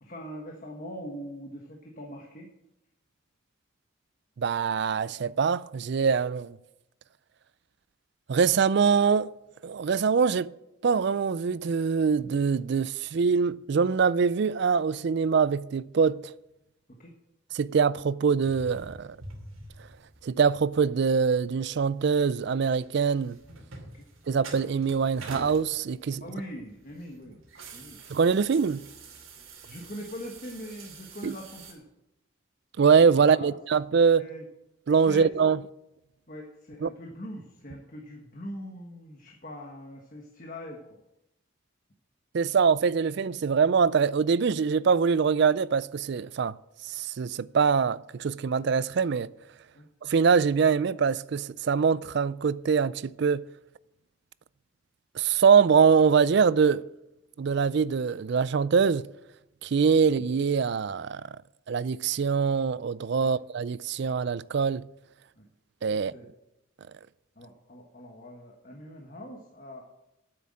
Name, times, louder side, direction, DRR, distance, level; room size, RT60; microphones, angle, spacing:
voice 1, 0.0-2.5 17.0-17.1 23.9-24.1 26.2-27.4 27.7-28.0 29.6-31.9 33.2-33.6 34.2-34.5 35.0-35.3 36.3-41.0 49.7-49.8 63.2-63.3 65.4-65.5 65.9-66.3 67.4-69.8, equal, 40° left, 1.4 m, -42 dB
voice 2, 4.4-6.6 8.3-9.3 9.6-10.5 10.8-16.2 17.5-19.1 20.2-23.4 24.3-26.2 28.1-28.8 31.2-31.3 32.8-34.3 34.9-35.6 36.8-36.9 42.3-46.5 46.9-49.3 50.0-53.4 55.2-56.8 57.4-59.1 59.6-61.2 61.7-64.8 65.8-66.1, right 6 dB, 55° right, 0.4 m, -23 dB
sound 1, 18.4-31.7, right 3 dB, 80° right, 2.7 m, -47 dB
9.3 x 7.8 x 7.6 m
head